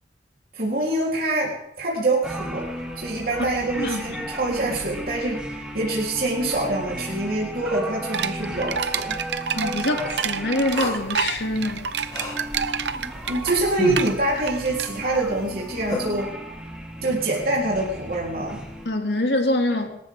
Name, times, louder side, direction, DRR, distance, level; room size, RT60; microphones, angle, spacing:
voice 1, 0.5-2.7 3.0-9.2 13.3-16.3 17.0-18.6, right 2 dB, 55° right, -4 dB, 3.9 m, -25 dB
sound 1, 2.2-18.9, right 1 dB, 5° right, 2.7 m, -36 dB
sound 2, 8.1-15.2, right 7 dB, 75° right, 0.8 m, -29 dB
voice 2, 9.5-11.8 18.9-20.0, left 1 dB, 75° left, 3 dB, 2.6 m, -24 dB
sound 3, 10.7-16.2, left 1 dB, 25° left, 3.7 m, -34 dB
26.0 x 13.5 x 3.8 m, 0.78 s
head